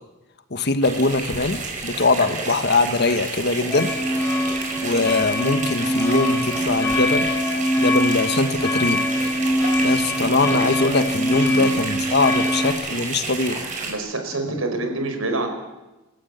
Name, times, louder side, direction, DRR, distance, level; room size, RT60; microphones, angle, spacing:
voice 1, 0.5-3.9 4.8-7.4 7.8-9.0 9.8-13.6, left 3 dB, 50° left, 10 dB, 1.4 m, -22 dB
sound 1, 0.8-13.9, right 3 dB, 40° right, 5.1 m, -31 dB
sound 2, 3.7-12.7, equal, 10° left, 7.8 m, -23 dB
voice 2, 13.9-15.5, right 2 dB, 75° right, 5 dB, 5.0 m, -26 dB
29.0 x 14.0 x 8.2 m, 1.1 s
head